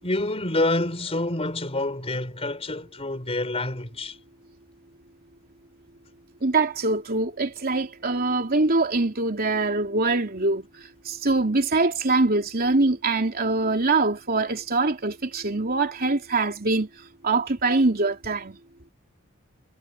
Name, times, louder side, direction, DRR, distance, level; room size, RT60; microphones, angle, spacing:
voice 1, 0.0-4.2, left 2 dB, 30° left, 4.4 m, -27 dB
voice 2, 6.4-10.6 11.0-16.9 17.2-18.6, right 3 dB, 45° right, 3.1 m, -23 dB
head